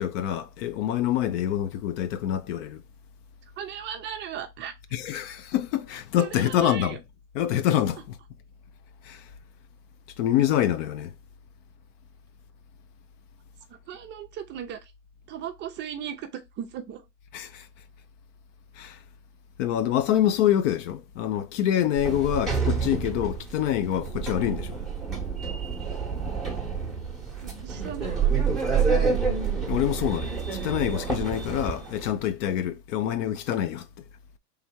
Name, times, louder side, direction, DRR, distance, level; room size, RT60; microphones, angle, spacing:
voice 1, 0.0-2.8 4.9-7.0 7.3-8.2 9.0-9.3 10.2-11.1 17.3-17.7 18.8-19.0 19.6-24.8 29.7-33.9, left 11 dB, 50° left, 0.7 m, -26 dB
voice 2, 3.6-4.7 6.2-7.0 13.9-14.8 15.3-17.0 27.4-28.4, right 9 dB, 25° right, 0.5 m, -37 dB
Sliding door, 22.0-32.1, right 5 dB, ahead, 1.0 m, -28 dB
3.5 x 3.4 x 4.4 m
supercardioid pair, 130°, 46 cm